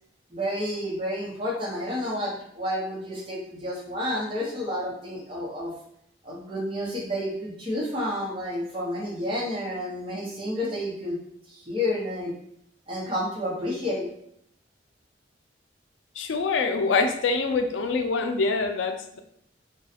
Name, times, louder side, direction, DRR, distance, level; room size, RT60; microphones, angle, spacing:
voice 1, 0.3-5.7 6.2-11.2 11.5-12.3 12.9-14.0, left 1 dB, 30° right, -6 dB, 0.9 m, -30 dB
voice 2, 16.2-19.2, left 4 dB, 85° left, 5 dB, 0.4 m, -25 dB
3.1 x 2.3 x 2.8 m, 0.70 s
head